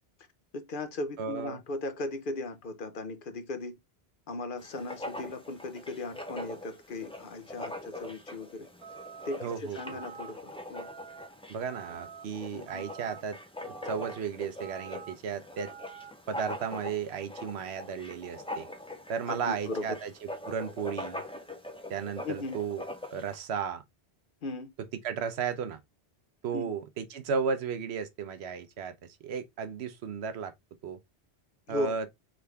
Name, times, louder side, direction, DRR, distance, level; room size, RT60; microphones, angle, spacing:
voice 1, 0.5-3.8 4.3-8.7 9.2-10.9 12.5-12.9 19.3-20.0 22.2-22.6 24.4-24.7 26.5-26.7 31.7-32.0, left 2 dB, 55° left, 0.8 m, -37 dB
voice 2, 1.2-1.6 9.4-9.8 11.5-13.4 13.7-15.7 16.3-18.7 19.1-20.1 20.4-21.2 21.9-22.8 23.1-23.8 25.0-25.8 26.4-28.9 29.2-30.5 30.8-31.0 31.7-32.1, right 6 dB, 75° right, 0.9 m, -34 dB
Writing, 4.6-23.4, left 1 dB, 5° left, 0.5 m, -43 dB
sound 1, 8.8-9.4 9.8-10.3 10.7-11.3 11.7-12.2 12.7-13.2 13.6-14.2 14.6-15.1 15.6-16.1, right 7 dB, 60° right, 1.2 m, -46 dB
3.7 x 3.4 x 3.3 m
omnidirectional pair, 1.1 m